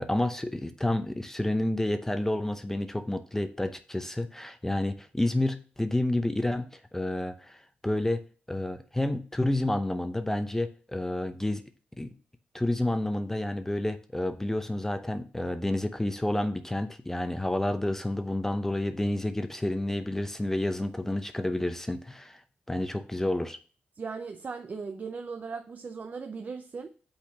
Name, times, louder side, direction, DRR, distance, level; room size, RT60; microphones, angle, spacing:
voice 1, 0.0-8.2 8.5-11.6 12.0-12.1 12.5-22.4 22.7-23.6, left 1 dB, 10° left, 0.7 m, -30 dB
voice 2, 24.0-26.9, right 5 dB, 45° right, 0.6 m, -38 dB
5.9 x 4.3 x 5.8 m
cardioid pair, 80°, 4 cm